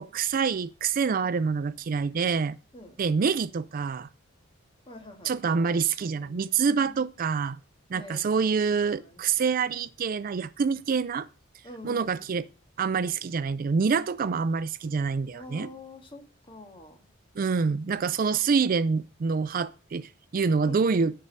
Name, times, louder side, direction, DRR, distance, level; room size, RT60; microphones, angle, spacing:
voice 1, 0.0-2.6 3.0-4.1 5.2-7.6 7.9-11.3 11.8-12.5 12.8-15.7 17.4-21.1, right 5 dB, 45° right, 0.4 m, -26 dB
voice 2, 4.9-7.1 7.9-9.5 11.6-12.4 15.3-17.1 20.6-20.8, left 1 dB, 25° left, 1.8 m, -47 dB
10.0 x 5.5 x 6.4 m
head